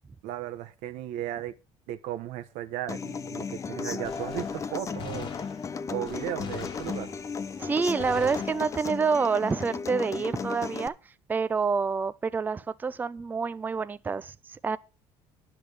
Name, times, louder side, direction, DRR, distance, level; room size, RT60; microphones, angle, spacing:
voice 1, 0.2-1.5 1.9-5.3 5.9-7.1, right 12 dB, 80° right, 1.0 m, -35 dB
Human voice / Acoustic guitar, 2.9-10.9, left 5 dB, 25° left, 0.6 m, -35 dB
Gunshot gunfire, 4.0-7.6 8.0-9.1, left 6 dB, 50° left, 1.4 m, -43 dB
voice 2, 7.6-10.9 11.3-14.8, right 5 dB, 15° right, 0.4 m, -27 dB
10.5 x 6.1 x 6.6 m
cardioid pair, 125°, 11 cm